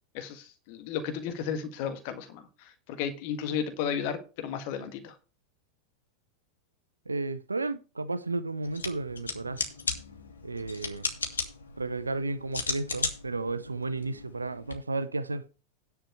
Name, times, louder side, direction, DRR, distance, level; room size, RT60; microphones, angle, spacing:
voice 1, 0.1-5.1, left 7 dB, 45° left, 1.6 m, -34 dB
voice 2, 7.1-9.7 10.4-11.1 11.8-15.4, right 3 dB, 80° right, 0.6 m, -33 dB
sound 1, 8.6-14.7, left 4 dB, 75° left, 2.3 m, -36 dB
10.5 x 4.6 x 7.7 m
figure-of-eight pair, 90°, 0 cm